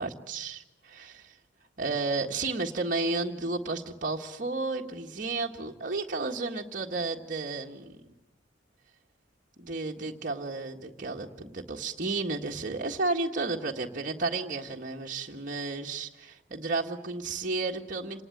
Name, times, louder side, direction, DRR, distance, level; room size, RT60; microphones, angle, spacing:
voice 1, 0.0-1.3 1.8-8.0 9.6-18.2, right 3 dB, 45° right, 0 dB, 1.7 m, -32 dB
27.5 x 19.0 x 9.2 m, 0.96 s
head